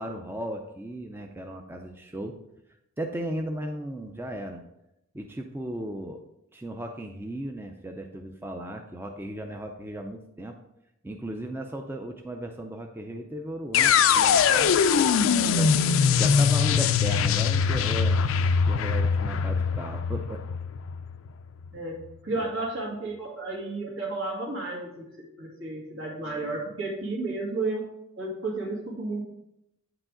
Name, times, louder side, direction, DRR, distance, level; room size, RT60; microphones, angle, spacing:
voice 1, 0.0-2.4 3.0-4.6 5.1-6.2 6.5-10.6 11.0-15.7 16.2-20.4 22.3-22.5, right 1 dB, 10° right, 4 dB, 0.4 m, -36 dB
sound 1, 13.7-21.7, left 6 dB, 75° left, 0.4 m, -22 dB
voice 2, 21.7-27.8 28.2-29.2, right 2 dB, 70° right, -2 dB, 2.0 m, -32 dB
8.6 x 4.8 x 3.7 m, 0.84 s
head